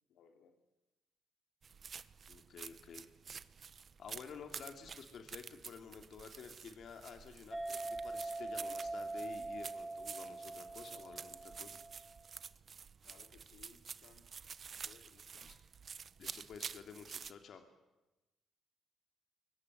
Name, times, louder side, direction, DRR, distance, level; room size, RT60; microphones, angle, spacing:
voice 1, 0.1-0.6 13.0-14.3 14.8-15.5, left 6 dB, 80° left, 6 dB, 3.2 m, -63 dB
sound 1, 1.6-17.3, right 6 dB, 45° right, 1.1 m, -50 dB
voice 2, 2.3-3.1 4.0-11.8 15.4-15.6 16.2-17.7, left 6 dB, 60° left, 5 dB, 2.7 m, -52 dB
sound 2, 7.5-12.3, right 2 dB, 10° right, 1.9 m, -43 dB
25.5 x 23.5 x 9.8 m, 1.0 s
cardioid pair, 90°, 0 cm